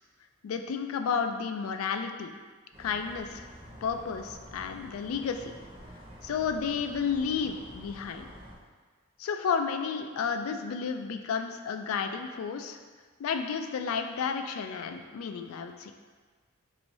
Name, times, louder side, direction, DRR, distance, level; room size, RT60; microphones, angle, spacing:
voice 1, 0.4-2.3 2.8-3.5 3.8-5.5 6.2-8.3 9.2-12.8 13.2-15.9, left 6 dB, 75° left, 6 dB, 0.3 m, -32 dB
sound 1, 2.7-8.5, equal, 25° right, 0.7 m, -48 dB
3.1 x 2.6 x 4.0 m, 1.5 s
head